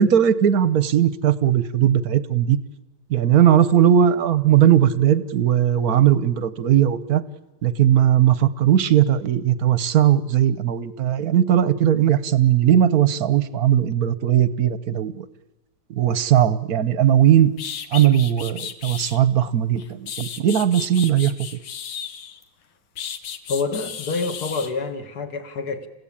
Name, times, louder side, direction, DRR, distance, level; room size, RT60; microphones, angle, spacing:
voice 1, 0.0-2.6 3.1-7.2 7.6-15.3 15.9-17.5 17.9-21.3, right 10 dB, 55° right, 1.2 m, -18 dB
sound 1, 17.2-17.3 17.6-19.2 19.8-22.4 23.0-24.7, left 8 dB, 85° left, 2.2 m, -34 dB
voice 2, 23.5-25.9, left 4 dB, 50° left, 2.3 m, -27 dB
29.5 x 16.0 x 8.7 m
omnidirectional pair, 2.2 m